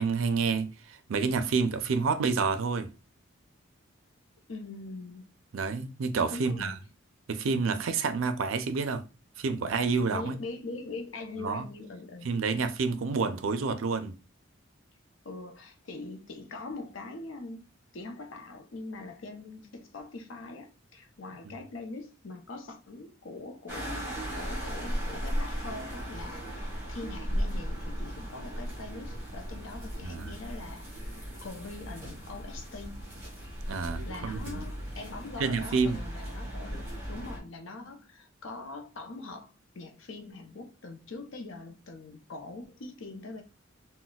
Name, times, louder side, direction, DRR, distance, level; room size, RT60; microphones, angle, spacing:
voice 1, 0.0-2.9 5.5-6.8 7.3-9.0 9.4-10.4 11.4-11.7 12.2-14.2 21.4-21.6 30.0-30.3 33.7-34.7 35.4-36.0, right 4 dB, 80° right, 0.4 m, -29 dB
voice 2, 4.5-5.3 6.3-6.8 10.1-12.3 15.2-31.1 31.4-33.2 34.1-43.4, left 3 dB, 70° left, 0.6 m, -43 dB
sound 1, 23.7-37.4, equal, 10° right, 1.3 m, -37 dB
4.0 x 2.1 x 2.3 m
head